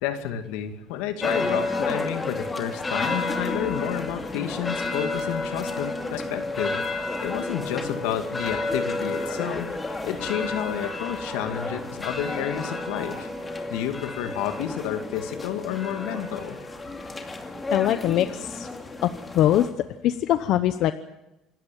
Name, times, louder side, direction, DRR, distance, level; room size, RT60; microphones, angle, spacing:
voice 1, 0.0-13.3 13.7-16.6, left 10 dB, 90° left, 8 dB, 2.1 m, -31 dB
sound 1, 1.2-19.7, left 2 dB, 20° left, 2.5 m, -31 dB
voice 2, 17.7-18.7 19.0-19.7 20.0-20.9, left 12 dB, 65° left, 11 dB, 0.9 m, -22 dB
27.0 x 13.0 x 9.1 m, 0.94 s
cardioid pair, 110°, 0 cm